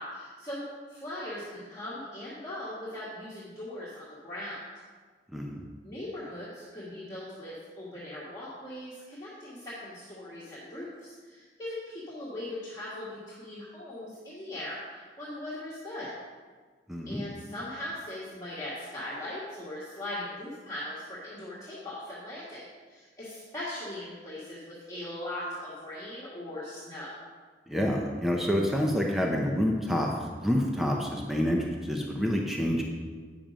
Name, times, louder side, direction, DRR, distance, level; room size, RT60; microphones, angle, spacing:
voice 1, 0.0-4.6 5.8-16.1 17.0-27.1, left 1 dB, 20° left, -10 dB, 1.7 m, -39 dB
voice 2, 5.3-5.7 16.9-17.2 27.7-32.8, equal, ahead, -1 dB, 0.7 m, -28 dB
9.0 x 5.9 x 5.1 m, 1.5 s
head